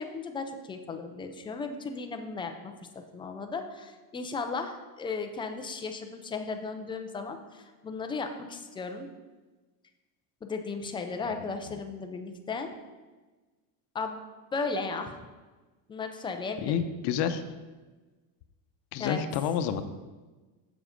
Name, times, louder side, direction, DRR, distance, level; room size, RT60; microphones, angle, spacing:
voice 1, 0.0-2.7 3.1-9.1 10.4-12.7 13.9-14.2 14.5-15.1 15.9-16.7 19.0-19.2, left 4 dB, 10° left, 5 dB, 0.3 m, -35 dB
voice 2, 16.6-17.4 18.9-19.8, left 8 dB, 55° left, 9 dB, 0.8 m, -29 dB
7.2 x 7.1 x 5.0 m, 1.3 s
cardioid pair, 145°, 48 cm